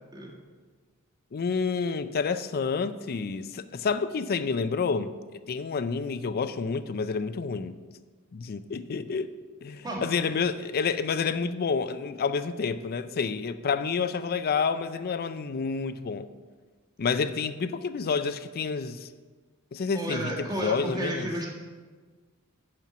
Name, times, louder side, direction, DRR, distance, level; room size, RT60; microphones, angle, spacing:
voice 1, 1.3-5.1 5.5-7.7 8.3-9.3 9.6-16.3 17.0-19.1 19.7-21.3, left 5 dB, 45° left, 12 dB, 0.4 m, -29 dB
voice 2, 19.9-21.5, right 1 dB, 20° right, -3 dB, 1.8 m, -32 dB
11.0 x 4.5 x 6.1 m, 1.4 s
head